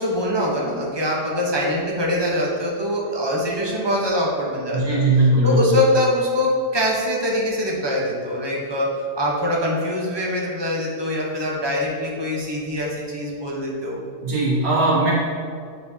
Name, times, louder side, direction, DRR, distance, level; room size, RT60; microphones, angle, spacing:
voice 1, 0.0-5.0 5.4-8.9 9.2-14.0, left 1 dB, 20° right, -3 dB, 0.7 m, -23 dB
voice 2, 4.7-5.8 14.2-15.1, right 2 dB, 80° right, -8 dB, 2.0 m, -19 dB
8.4 x 4.5 x 2.8 m, 2.2 s
omnidirectional pair, 1.7 m